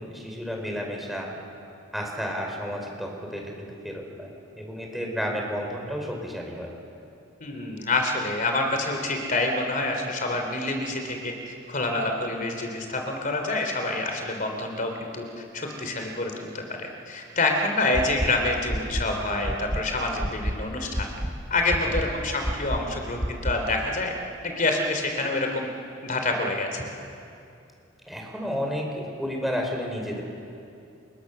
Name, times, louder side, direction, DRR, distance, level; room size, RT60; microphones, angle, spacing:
voice 1, 0.0-1.3 1.9-6.7 21.8-22.1 28.1-30.2, equal, ahead, 0 dB, 4.3 m, -32 dB
voice 2, 7.4-15.2 15.5-21.1 21.5-24.1 24.4-25.7 26.0-26.9, left 2 dB, 45° left, 3 dB, 3.3 m, -27 dB
sound 1, 17.9-18.3 18.7-19.0 19.4-19.8 20.2-20.5 20.9-21.3 21.7-22.0 22.4-22.8 23.2-23.5, equal, 20° right, 1.4 m, -27 dB
30.0 x 21.0 x 6.8 m, 2.6 s
head